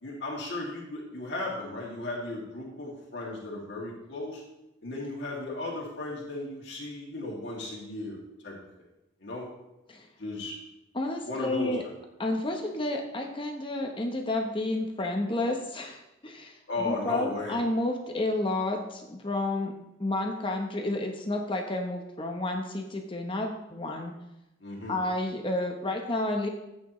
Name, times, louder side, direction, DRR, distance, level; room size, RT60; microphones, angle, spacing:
voice 1, 0.0-4.4 4.8-8.6 9.2-9.5 10.2-10.5 11.3-11.8 16.7-17.6 24.6-25.0, left 2 dB, 60° left, -3 dB, 2.5 m, -35 dB
voice 2, 10.9-11.8 12.2-19.7 20.0-24.1 24.9-26.5, left 2 dB, 25° left, 2 dB, 0.9 m, -30 dB
14.5 x 8.7 x 3.1 m, 0.93 s
head